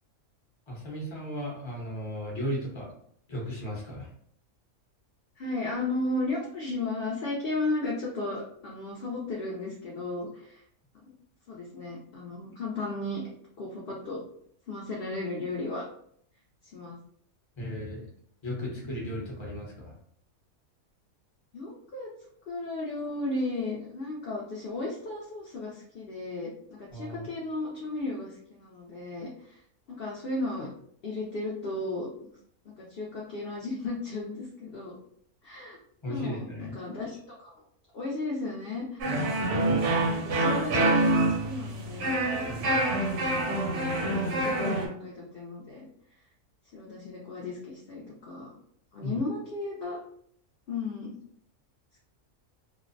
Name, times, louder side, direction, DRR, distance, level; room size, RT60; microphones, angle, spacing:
voice 1, 0.7-2.9 3.3-4.1 17.6-18.1 18.4-19.9 26.9-27.3 36.0-36.8 42.4-43.0 49.0-49.2, equal, 25° left, -3 dB, 0.6 m, -35 dB
voice 2, 5.4-10.6 11.5-13.2 13.6-14.2 14.7-15.8 16.7-17.0 21.5-22.1 22.5-29.6 29.9-30.7 31.0-32.3 32.7-35.0 35.4-35.8 36.1-37.2 37.4-37.5 37.9-39.1 39.6-39.9 40.1-42.2 42.6-42.8 43.8-45.9 46.7-48.5 48.9-50.0 50.7-51.1, left 2 dB, 65° left, -3 dB, 0.6 m, -34 dB
sound 1, 39.0-44.9, right 2 dB, 65° right, 0.8 m, -26 dB
2.5 x 2.0 x 2.5 m, 0.66 s
omnidirectional pair, 1.5 m